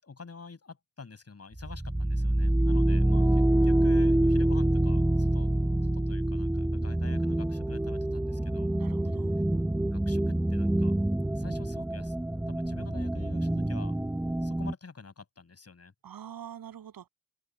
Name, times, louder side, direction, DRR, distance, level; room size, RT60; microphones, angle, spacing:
voice 1, 0.0-5.5 5.8-8.7 9.9-10.9 11.3-12.1 12.5-13.9 14.4-15.9, left 4 dB, 45° left, 7.8 m, -47 dB
sound 1, 1.6-14.7, right 1 dB, 5° right, 0.7 m, -26 dB
voice 2, 8.8-9.4 16.0-17.1, right 9 dB, 80° right, 7.4 m, -45 dB
open air
cardioid pair, 60°, 35 cm